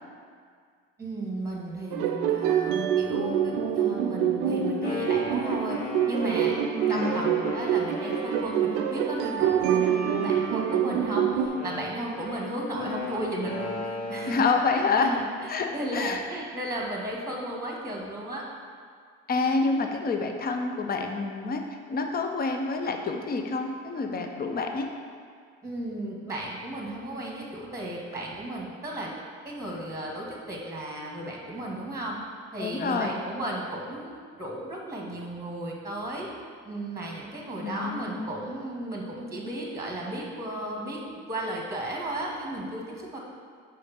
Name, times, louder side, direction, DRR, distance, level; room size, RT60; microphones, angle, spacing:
voice 1, 1.0-14.4 14.9-15.2 15.7-18.5 25.6-29.1 29.4-32.2 32.5-36.3 36.6-41.0 41.3-43.2, right 1 dB, 10° right, -1 dB, 1.3 m, -34 dB
sound 1, 1.9-11.5, right 8 dB, 70° right, 0.6 m, -26 dB
Wind instrument woodwind instrument, 4.6-9.3 9.8-14.5, left 3 dB, 70° left, 1.5 m, -37 dB
voice 2, 6.9-7.4 14.3-15.1 15.5-16.2 19.3-21.6 21.9-24.9 32.6-33.2 37.6-38.3, left 4 dB, 25° left, 4 dB, 0.7 m, -27 dB
5.1 x 3.8 x 5.8 m, 2.1 s
hypercardioid pair, 65°, 33 cm